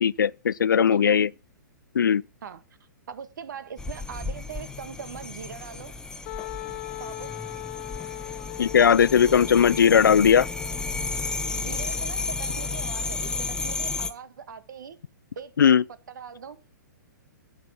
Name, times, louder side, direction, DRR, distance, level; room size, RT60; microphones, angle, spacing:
voice 1, 0.0-1.3 1.9-2.2 8.6-10.5 15.6-15.8, left 7 dB, 85° left, 0.5 m, -18 dB
voice 2, 0.9-1.2 2.4-2.6 3.1-5.9 7.0-7.3 9.2-9.5 11.5-15.0 15.4-15.8 16.1-16.6, right 7 dB, 70° right, 1.7 m, -41 dB
sound 1, 3.8-14.1, left 3 dB, 5° left, 1.2 m, -33 dB
Wind instrument woodwind instrument, 6.3-11.9, left 23 dB, 35° left, 0.6 m, -39 dB
11.5 x 8.0 x 6.0 m
hypercardioid pair, 125°, 10 cm